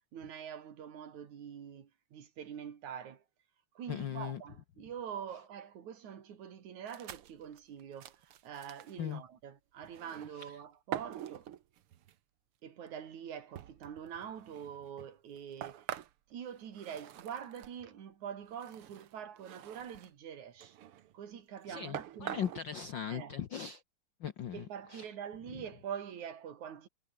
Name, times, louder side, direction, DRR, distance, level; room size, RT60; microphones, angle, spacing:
voice 1, 0.1-3.2 3.8-11.5 12.6-15.9 16.3-20.8 21.1-22.5 23.1-23.4 24.5-26.9, right 8 dB, 80° right, 3.8 m, -45 dB
voice 2, 3.9-4.4 9.0-9.2 10.4-10.5 21.7-23.8 24.2-24.7 24.9-25.1 25.5-25.6, left 9 dB, 60° left, 1.2 m, -39 dB
sound 1, 6.9-9.0 9.8-10.5 10.9-12.1 12.9-13.0 13.6-17.8 18.5-20.1 20.6-21.1 21.6-21.7 21.9-22.6, right 11 dB, 60° right, 1.7 m, -45 dB
omnidirectional pair, 3.3 m